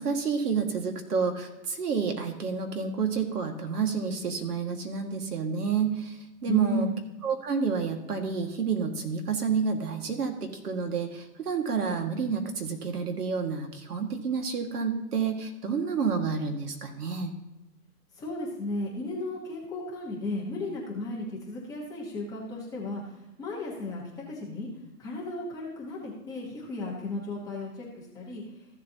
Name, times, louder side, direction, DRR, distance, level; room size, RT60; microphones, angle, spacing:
voice 1, 0.0-6.2 6.4-6.9 7.2-17.3, right 5 dB, 70° right, 4 dB, 2.0 m, -29 dB
voice 2, 6.5-6.9 18.2-23.0 23.4-24.0 24.3-24.7 25.0-27.9 28.1-28.4, left 2 dB, 5° left, -5 dB, 1.2 m, -34 dB
15.0 x 7.4 x 2.8 m, 0.96 s
hypercardioid pair, 155°, 48 cm